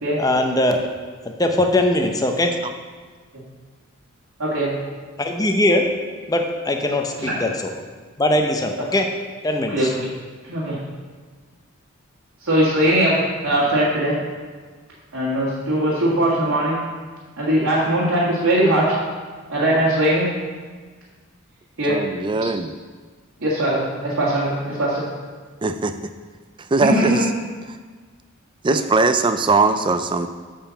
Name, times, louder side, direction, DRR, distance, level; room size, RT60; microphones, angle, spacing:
voice 1, 0.2-0.9 1.2-2.5 5.2-5.9 6.3-7.5 8.2-9.1 9.4-9.8, left 1 dB, 15° left, 4 dB, 0.7 m, -20 dB
voice 2, 4.4-4.8 7.2-7.6 9.7-10.0 10.4-10.8 12.4-14.2 15.1-16.8 17.4-19.0 19.5-20.3 21.8-22.0 23.4-25.1 26.8-27.2 28.7-28.8, right 1 dB, 85° right, -7 dB, 1.8 m, -20 dB
voice 3, 21.9-22.7 25.6-26.0 26.7-27.2 28.6-30.3, right 3 dB, 20° right, 9 dB, 0.4 m, -20 dB
6.7 x 5.6 x 6.9 m, 1.5 s
head